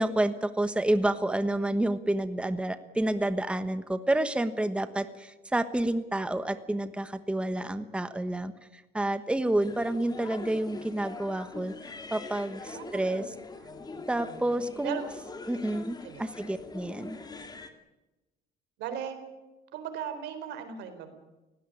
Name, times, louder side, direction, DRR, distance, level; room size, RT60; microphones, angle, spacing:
voice 1, 0.0-13.2 14.1-15.0 15.5-17.2, right 1 dB, 5° right, 11 dB, 1.2 m, -29 dB
sound 1, 9.6-17.7, left 3 dB, 25° left, 2.3 m, -43 dB
voice 2, 12.7-13.2 13.6-13.9 14.8-15.0 15.6-15.8 16.0-16.3 18.8-19.2 19.7-21.1, right 9 dB, 85° right, 9 dB, 3.9 m, -38 dB
18.5 x 17.0 x 10.0 m, 1.1 s
cardioid pair, 110°, 17 cm